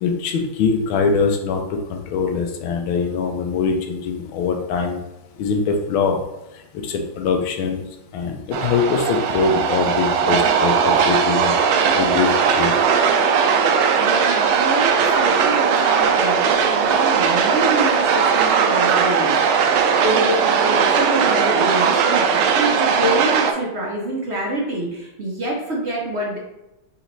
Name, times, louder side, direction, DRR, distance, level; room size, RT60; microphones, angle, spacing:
voice 1, 0.0-1.6 1.9-5.0 5.4-6.2 6.8-7.8 8.1-11.5 11.9-12.7, left 5 dB, 80° left, 3 dB, 1.4 m, -22 dB
sound 1, 8.5-23.5, right 6 dB, 75° right, 1.0 m, -18 dB
voice 2, 14.0-26.4, right 1 dB, 60° right, -3 dB, 0.7 m, -26 dB
4.2 x 3.0 x 3.9 m, 0.94 s
omnidirectional pair, 2.3 m